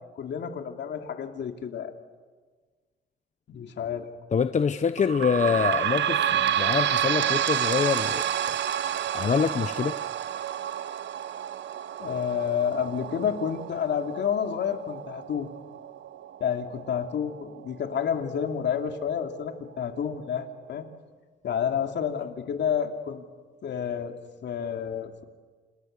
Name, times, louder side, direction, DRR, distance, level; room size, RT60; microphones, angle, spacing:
voice 1, 0.0-1.9 3.5-4.1 12.0-15.5 16.4-20.9 21.4-23.2 23.6-24.1 24.4-25.2, left 8 dB, 65° left, 5 dB, 2.9 m, -29 dB
voice 2, 4.3-8.2 9.1-9.9, left 6 dB, 35° left, 10 dB, 0.9 m, -25 dB
sound 1, 5.0-18.1 18.7-18.8 19.1-19.2 20.0-20.1, right 10 dB, 65° right, 0.9 m, -29 dB
29.5 x 28.0 x 6.8 m, 1.5 s
cardioid pair, 90°, 20 cm